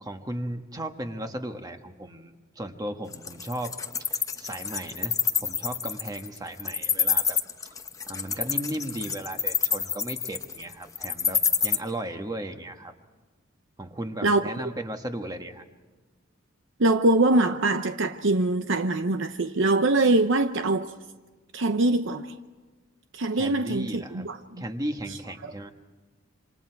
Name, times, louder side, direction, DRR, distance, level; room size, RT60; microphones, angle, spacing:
voice 1, 0.0-3.7 4.0-7.7 8.1-12.9 13.8-15.6 23.3-24.3 24.6-25.7, right 1 dB, 20° right, 1.4 m, -36 dB
Wild animals, 3.1-11.8, left 6 dB, 15° left, 0.9 m, -26 dB
voice 2, 16.8-20.9 21.5-22.3 23.1-24.4 25.4-25.5, right 2 dB, 65° right, 0.8 m, -23 dB
27.5 x 26.5 x 4.7 m
head